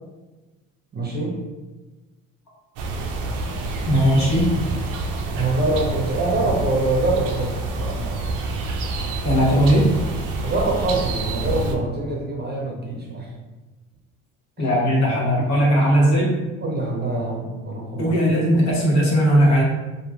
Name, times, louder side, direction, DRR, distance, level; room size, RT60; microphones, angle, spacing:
voice 1, 0.9-1.4 5.3-8.3 10.4-13.3 14.6-14.7 16.6-18.2, right 2 dB, 25° right, -2 dB, 0.7 m, -25 dB
sound 1, 2.8-11.8, right 2 dB, 55° right, 0.5 m, -27 dB
voice 2, 3.9-4.6 9.2-9.9 14.6-16.4 18.0-19.6, equal, 45° left, -3 dB, 1.1 m, -18 dB
2.9 x 2.5 x 2.3 m, 1.2 s
hypercardioid pair, 60°, 38 cm